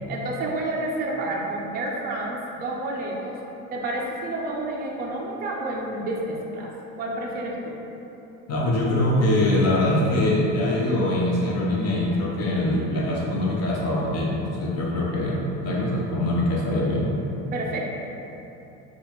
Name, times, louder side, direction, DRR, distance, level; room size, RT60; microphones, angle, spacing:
voice 1, 0.1-3.4 3.7-7.8 17.5-17.9, right 2 dB, 25° right, -2 dB, 0.4 m, -30 dB
voice 2, 8.5-17.1, left 1 dB, 45° left, -4 dB, 0.8 m, -23 dB
4.0 x 2.4 x 3.0 m, 2.9 s
cardioid pair, 130°, 36 cm